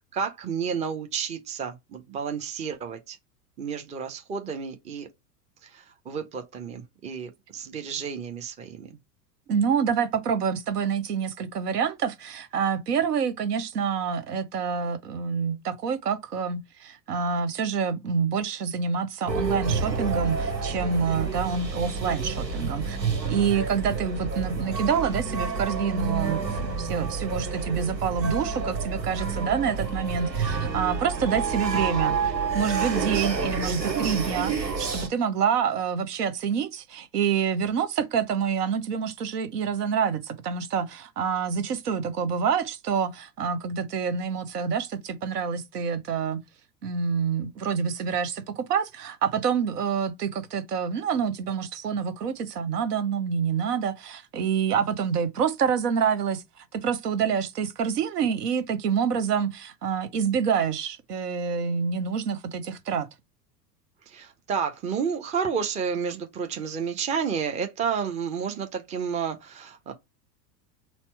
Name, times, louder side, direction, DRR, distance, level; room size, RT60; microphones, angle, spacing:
voice 1, 0.0-3.2 3.6-5.1 5.6-9.0 64.1-69.9, right 6 dB, 15° right, 0.6 m, -31 dB
voice 2, 9.5-23.0 23.2-46.4 46.8-56.4 56.7-63.1, right 6 dB, 65° right, 0.9 m, -27 dB
sound 1, 19.3-35.1, right 5 dB, 85° right, 1.2 m, -29 dB
4.2 x 2.0 x 4.4 m
figure-of-eight pair, 85°, 49 cm